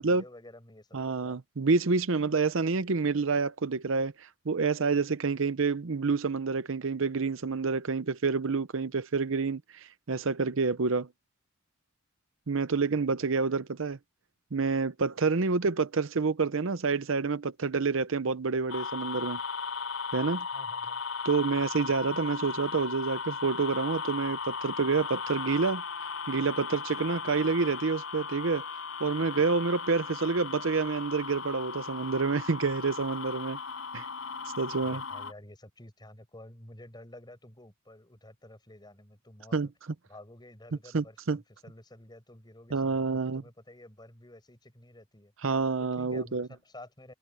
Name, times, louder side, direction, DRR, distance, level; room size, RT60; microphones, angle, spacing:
voice 1, 0.0-1.4 12.9-13.3 20.5-21.0 34.8-39.6 40.1-43.1 43.3-45.3 45.8-47.1, left 1 dB, 20° left, 6.0 m, -51 dB
voice 2, 0.9-11.1 12.5-14.0 14.5-19.4 20.1-20.5 21.2-25.8 26.3-28.6 29.0-33.6 33.9-34.1 34.6-35.0 39.5-39.7 40.9-41.4 42.7-43.4 45.4-46.5, right 4 dB, 65° right, 0.7 m, -28 dB
sound 1, 18.7-35.3, left 5 dB, 70° left, 6.7 m, -37 dB
head